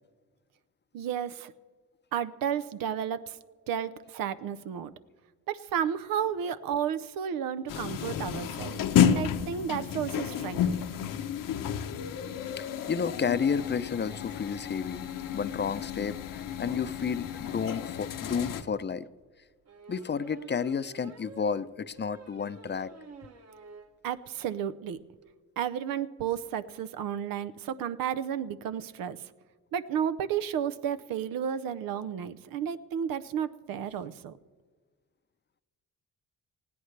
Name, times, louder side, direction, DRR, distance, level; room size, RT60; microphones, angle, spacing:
voice 1, 0.9-1.5 2.1-3.4 3.7-4.9 5.5-10.7 24.0-25.0 25.6-29.2 29.7-34.4, right 9 dB, 85° right, 13 dB, 0.8 m, -32 dB
sound 1, 7.7-18.6, left 9 dB, 75° left, 1.0 m, -31 dB
voice 2, 12.6-15.0 15.3-19.1 19.9-22.9, left 6 dB, 30° left, 14 dB, 0.6 m, -31 dB
sound 2, 19.7-24.0 24.3-24.4 24.7-24.8 25.0-25.2, right 4 dB, 50° right, 1.4 m, -49 dB
20.0 x 16.0 x 3.3 m, 1.4 s
cardioid pair, 85°, 33 cm